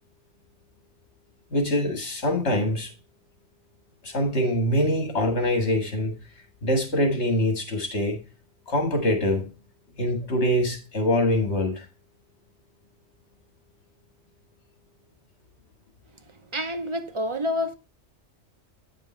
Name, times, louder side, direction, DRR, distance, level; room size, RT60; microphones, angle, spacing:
voice 1, 1.5-2.9 4.0-6.1 6.6-8.2 8.7-9.5 10.0-11.9, left 1 dB, 60° left, 2.1 m, -24 dB
voice 2, 16.3-17.7, left 1 dB, 30° right, 0.7 m, -28 dB
9.2 x 5.2 x 4.4 m
omnidirectional pair, 1.3 m